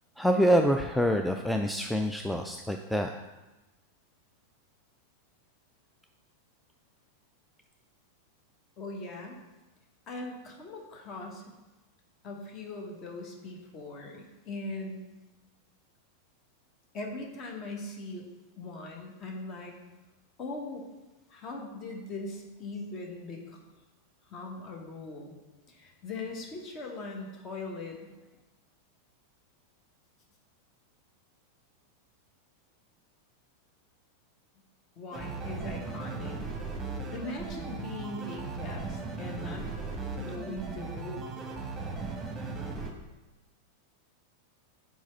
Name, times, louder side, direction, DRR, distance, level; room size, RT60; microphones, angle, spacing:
voice 1, 0.2-3.1, equal, ahead, 4 dB, 0.3 m, -26 dB
voice 2, 8.8-9.4 10.1-11.4 12.2-15.0 16.9-18.3 18.6-19.7 20.4-20.9 21.3-23.6 24.3-25.3 25.7-28.1 35.0-36.4 37.1-39.7 40.2-41.3, left 2 dB, 35° left, 2 dB, 1.2 m, -40 dB
sound 1, 35.1-42.9, right 4 dB, 20° right, 0.9 m, -37 dB
4.7 x 4.2 x 5.7 m, 1.1 s
figure-of-eight pair, 90°, 0 cm